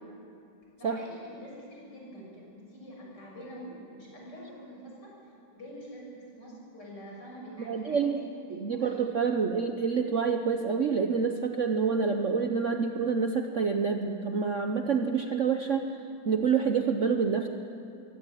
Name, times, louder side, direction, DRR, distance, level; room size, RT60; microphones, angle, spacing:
voice 1, 0.6-9.0, equal, 55° left, -3 dB, 7.2 m, -46 dB
voice 2, 7.7-8.2 8.5-15.9 16.2-17.5, right 5 dB, 50° right, 5 dB, 1.0 m, -27 dB
23.0 x 17.0 x 9.0 m, 2.6 s
omnidirectional pair, 2.2 m